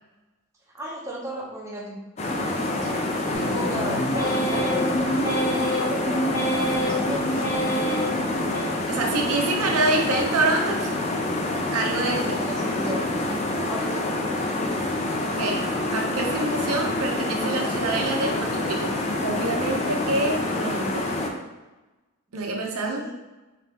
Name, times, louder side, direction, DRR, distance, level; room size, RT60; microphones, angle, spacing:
voice 1, 0.7-5.5 5.8-8.2 12.2-13.0 13.4-14.1 22.5-23.1, right 1 dB, 15° right, -3 dB, 0.7 m, -35 dB
sound 1, 2.2-21.3, left 2 dB, 30° left, 0.4 m, -27 dB
sound 2, 3.3-9.2 9.6-10.2 10.7-11.3 11.8-12.4 12.9-13.5 14.0-14.5, equal, 70° left, 1.0 m, -29 dB
voice 2, 8.9-10.9 11.7-12.4 15.2-21.1 22.3-23.0, right 2 dB, 85° right, 2 dB, 0.7 m, -26 dB
4.1 x 2.9 x 3.4 m, 1.1 s
head